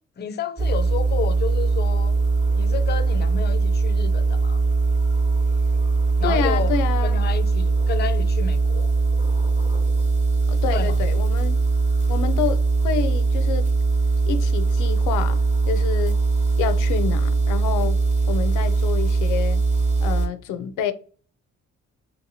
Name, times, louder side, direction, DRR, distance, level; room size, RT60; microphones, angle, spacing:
voice 1, 0.2-2.2 2.6-4.6 6.2-6.7 7.0-8.9 10.7-11.0, left 7 dB, 35° left, 0.4 m, -31 dB
sound 1, 0.6-20.3, right 3 dB, 25° right, 0.8 m, -21 dB
voice 2, 6.2-7.2 10.5-11.6 12.1-13.7 14.3-15.4 15.7-16.2 16.6-18.0 18.3-19.6 20.0-20.9, left 8 dB, 90° left, 0.5 m, -28 dB
3.2 x 2.8 x 2.7 m
cardioid pair, 90°, 30 cm